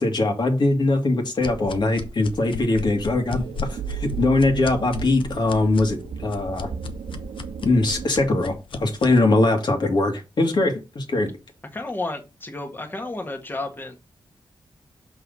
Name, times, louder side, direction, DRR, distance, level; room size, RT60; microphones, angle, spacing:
voice 1, 0.0-6.7 7.6-11.3, left 2 dB, 60° left, 2.1 m, -21 dB
sound 1, 1.4-9.2, left 4 dB, 80° left, 0.9 m, -36 dB
sound 2, 3.3-8.3, right 9 dB, 85° right, 0.6 m, -35 dB
voice 2, 11.7-14.0, left 2 dB, 25° left, 1.5 m, -31 dB
6.2 x 5.5 x 4.1 m
wide cardioid pair, 85°, 9 cm